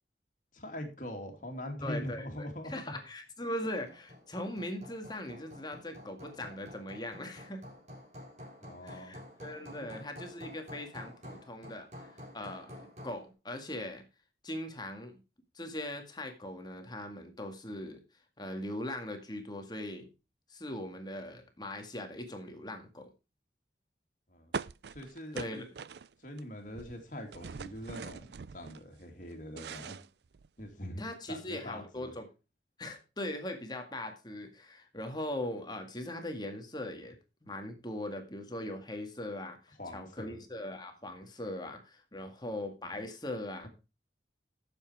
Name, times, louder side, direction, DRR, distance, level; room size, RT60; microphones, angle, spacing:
voice 1, 0.5-3.0 8.6-9.2 9.8-10.1 24.3-24.5 24.9-25.4 26.2-30.0 30.6-31.0 31.3-32.1 39.8-40.4, left 1 dB, 45° left, 4 dB, 2.9 m, -42 dB
voice 2, 1.8-7.6 8.8-14.0 14.4-15.2 15.5-18.0 18.4-20.1 20.5-23.1 25.3-25.7 31.0-32.3 32.8-43.7, left 1 dB, 25° left, 5 dB, 1.9 m, -40 dB
Hammer, 3.6-13.3, left 1 dB, 40° right, 4.0 m, -50 dB
sound 1, 24.5-26.4 26.7-28.8 29.2-30.8, right 5 dB, 65° right, 0.4 m, -42 dB
11.5 x 7.5 x 4.6 m, 0.30 s
head